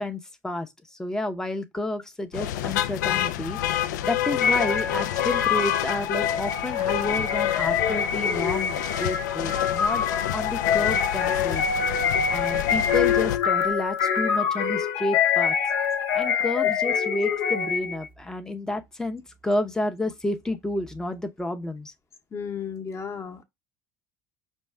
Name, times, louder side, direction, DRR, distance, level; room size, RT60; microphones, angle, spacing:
voice 1, 0.0-10.1 10.3-11.6 12.3-15.5 16.1-21.9, left 1 dB, 5° left, 0.7 m, -30 dB
sound 1, 2.3-13.4, left 12 dB, 85° left, 0.4 m, -29 dB
sound 2, 4.4-18.0, left 7 dB, 65° left, 0.7 m, -25 dB
voice 2, 22.3-23.4, left 6 dB, 30° left, 0.9 m, -34 dB
5.3 x 2.3 x 3.3 m
hypercardioid pair, 90°, 9 cm